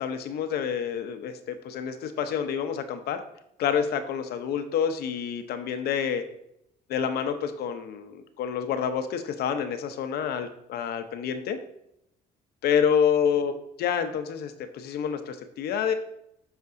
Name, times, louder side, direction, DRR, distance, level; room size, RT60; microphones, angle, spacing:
voice 1, 0.0-3.2 3.6-6.2 6.9-11.6 12.6-13.5 13.8-15.9, left 7 dB, 70° left, 9 dB, 0.8 m, -28 dB
8.2 x 5.9 x 2.6 m, 0.78 s
cardioid pair, 110°, 17 cm